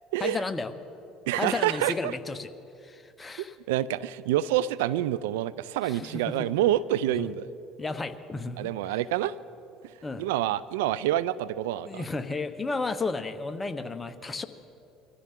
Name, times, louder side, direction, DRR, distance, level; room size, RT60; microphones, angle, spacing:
voice 1, 0.2-0.7 1.4-2.5 2.8-3.5 5.8-6.5 7.1-7.3 7.8-8.7 10.0-10.2 11.8-14.4, left 3 dB, 20° left, 9 dB, 0.9 m, -33 dB
voice 2, 1.3-2.1 3.7-7.5 8.6-9.4 9.8-12.0, right 13 dB, 85° right, 18 dB, 0.4 m, -27 dB
24.0 x 14.5 x 3.7 m, 2.8 s
supercardioid pair, 85°, 0 cm